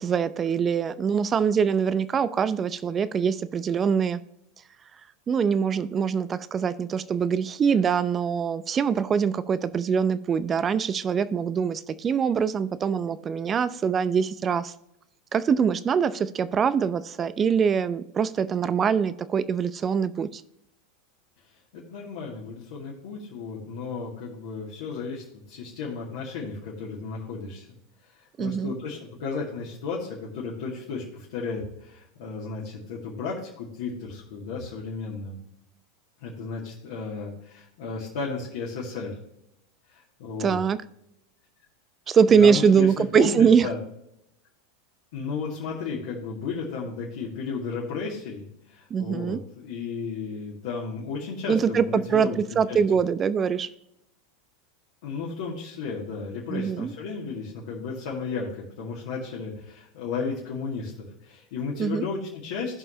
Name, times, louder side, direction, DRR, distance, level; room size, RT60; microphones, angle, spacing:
voice 1, 0.0-4.2 5.3-14.7 15.3-20.4 28.4-28.7 40.4-40.8 42.1-43.7 48.9-49.4 51.5-53.7 56.5-56.9 61.8-62.1, right 6 dB, 30° right, 15 dB, 0.6 m, -23 dB
voice 2, 21.7-27.6 28.2-35.4 36.2-39.1 39.9-40.6 42.3-43.8 45.1-52.4 52.7-52.8 55.0-62.8, left 4 dB, 65° left, -5 dB, 2.4 m, -34 dB
16.0 x 5.4 x 2.8 m, 0.81 s
hypercardioid pair, 90°, 0 cm